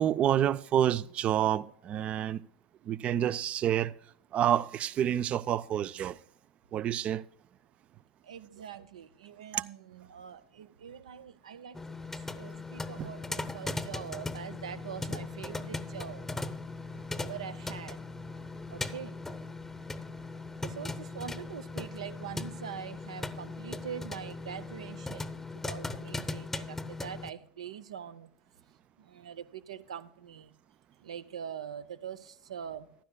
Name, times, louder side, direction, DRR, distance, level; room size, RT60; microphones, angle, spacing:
voice 1, 0.0-2.4 2.8-3.9 4.3-6.2 6.7-7.2 9.5-9.7 13.0-13.1, right 10 dB, 40° right, 0.4 m, -28 dB
voice 2, 8.2-11.8 12.1-16.3 17.2-18.1 18.7-19.2 20.6-28.3 29.0-30.5 31.0-32.9, right 8 dB, 75° right, 0.6 m, -43 dB
sound 1, 11.7-27.3, left 3 dB, 10° left, 0.7 m, -39 dB
14.5 x 11.5 x 2.2 m
figure-of-eight pair, 80°, 3 cm